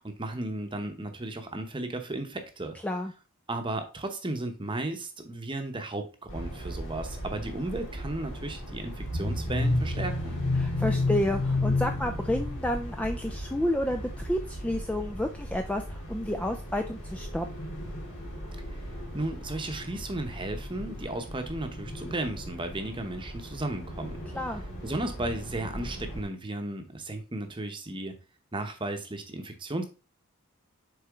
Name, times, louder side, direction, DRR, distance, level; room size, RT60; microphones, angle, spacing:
voice 1, 0.0-2.8 3.5-10.4 19.1-24.2 24.8-28.2 28.5-29.8, right 2 dB, 20° right, 6 dB, 0.9 m, -34 dB
sound 1, 6.3-26.2, left 2 dB, 90° left, 2.7 m, -34 dB
voice 2, 10.6-17.5 24.3-24.6, left 1 dB, 5° left, 5 dB, 0.3 m, -30 dB
6.8 x 4.4 x 3.6 m, 0.33 s
head